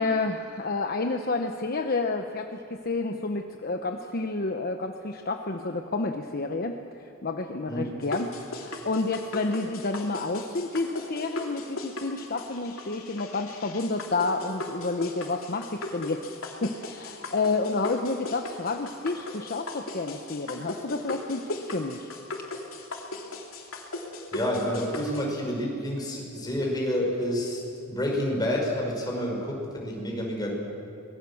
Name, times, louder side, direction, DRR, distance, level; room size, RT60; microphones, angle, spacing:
voice 1, 0.0-6.8 7.2-16.2 16.6-22.1, left 3 dB, 45° left, 5 dB, 1.0 m, -30 dB
sound 1, 8.0-25.2, left 2 dB, 75° left, 3.0 m, -38 dB
voice 2, 24.3-30.5, equal, 20° left, -1 dB, 5.4 m, -29 dB
25.0 x 20.5 x 7.2 m, 2.8 s
head